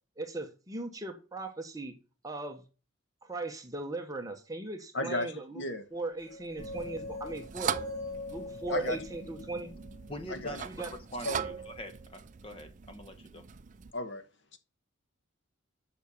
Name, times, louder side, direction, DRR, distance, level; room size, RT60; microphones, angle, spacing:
voice 1, 0.2-1.9 2.2-2.6 3.2-5.6 5.9-7.7 8.3-9.7 10.7-10.9, right 2 dB, 15° right, 1.1 m, -38 dB
voice 2, 4.9-5.8 8.7-9.0 10.3-10.6 11.2-11.4 13.9-14.2 14.5-14.6, left 1 dB, 55° left, 1.3 m, -34 dB
sound 1, 6.3-10.4, left 2 dB, 85° left, 4.7 m, -43 dB
sound 2, 6.6-13.9, right 7 dB, 35° right, 0.4 m, -40 dB
voice 3, 10.1-10.7 11.1-13.5, equal, 25° left, 1.1 m, -43 dB
7.3 x 5.8 x 7.0 m
head